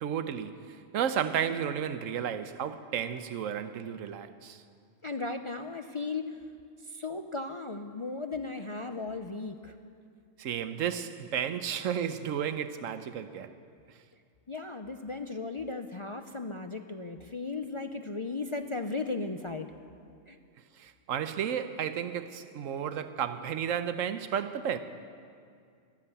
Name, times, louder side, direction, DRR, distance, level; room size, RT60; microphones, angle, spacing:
voice 1, 0.0-4.6 10.4-13.5 20.8-24.8, right 8 dB, 85° right, 1.1 m, -33 dB
voice 2, 5.0-6.4 6.8-9.7 14.5-19.7 20.3-20.4, left 3 dB, 40° left, 0.5 m, -36 dB
13.0 x 13.0 x 8.2 m
omnidirectional pair, 1.3 m